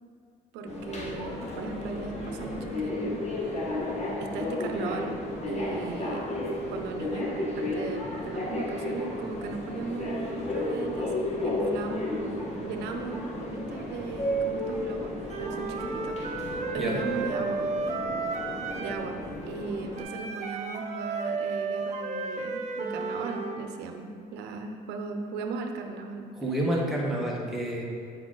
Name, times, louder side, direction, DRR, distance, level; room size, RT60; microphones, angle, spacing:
voice 1, 0.5-3.7 4.2-5.2 5.5-6.3 6.7-17.7 18.8-26.3, right 4 dB, 90° right, 5 dB, 0.7 m, -37 dB
Subway metro underground, 0.7-20.0, left 1 dB, 40° left, 1.3 m, -33 dB
Wind instrument woodwind instrument, 15.3-19.1 19.9-23.6, right 4 dB, 45° right, 0.8 m, -33 dB
voice 2, 26.3-27.8, right 1 dB, ahead, -4 dB, 1.5 m, -29 dB
8.7 x 4.7 x 3.9 m, 2.3 s
cardioid pair, 110°, 17 cm